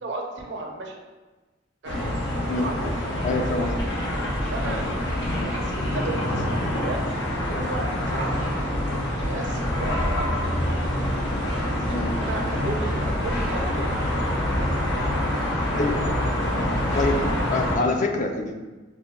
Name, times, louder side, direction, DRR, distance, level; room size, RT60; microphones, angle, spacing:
voice 1, 0.0-0.9 1.8-3.6 4.5-4.9 5.4-7.0 7.5-8.4 8.9-10.9 11.7-13.9 14.9-15.6, right 2 dB, 65° right, 1 dB, 0.5 m, -35 dB
sound 1, 1.8-17.8, left 1 dB, 65° left, 0.8 m, -26 dB
voice 2, 2.5-3.0 3.2-3.7 4.6-4.8 5.3-5.5 11.9-12.2 15.7-16.0 16.9-17.2 17.5-18.6, left 3 dB, 40° left, 3 dB, 0.3 m, -26 dB
5.7 x 2.1 x 2.3 m, 1.2 s
head